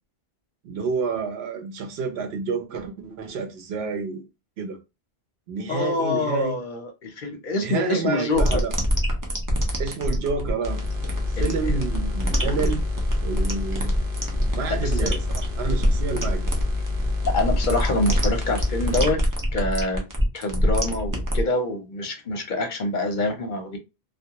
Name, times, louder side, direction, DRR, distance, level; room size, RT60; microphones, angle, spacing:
voice 1, 0.6-4.2 4.6-4.8 5.5-6.6 7.6-8.7 9.8-10.8 11.3-12.9 13.2-13.9 14.5-16.5, right 5 dB, 90° right, 0.9 m, -29 dB
voice 2, 5.7-8.6 11.4-11.8 12.4-12.8 14.7-15.2 17.3-19.2 19.5-20.0 20.3-23.8, left 2 dB, 55° left, 0.7 m, -26 dB
sound 1, 8.4-21.4, equal, 25° right, 0.4 m, -25 dB
sound 2, 10.6-19.1, left 3 dB, 60° right, 0.9 m, -29 dB
2.3 x 2.2 x 2.8 m
omnidirectional pair, 1.0 m